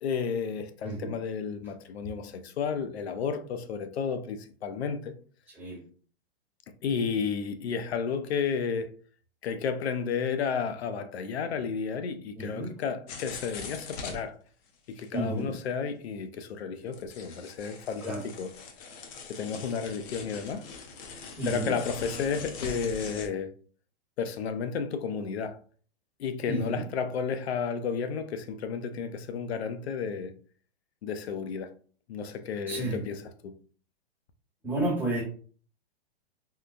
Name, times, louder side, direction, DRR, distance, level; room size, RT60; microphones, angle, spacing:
voice 1, 0.0-5.1 6.8-9.0 9.4-14.4 14.9-18.5 19.3-20.7 21.5-23.5 24.2-25.6 26.2-30.3 31.0-31.7 32.1-33.5, left 6 dB, 80° left, 0.5 m, -32 dB
voice 2, 12.4-12.7 15.1-15.5 18.0-18.2 21.4-21.7 26.5-26.8 32.7-33.0 34.6-35.2, right 2 dB, 5° right, 1.1 m, -31 dB
sound 1, 13.1-14.2 15.0-15.1 15.4-15.5 15.8-15.9 16.9-23.3, left 4 dB, 35° left, 0.6 m, -42 dB
3.7 x 2.1 x 2.5 m
hypercardioid pair, 125°, 31 cm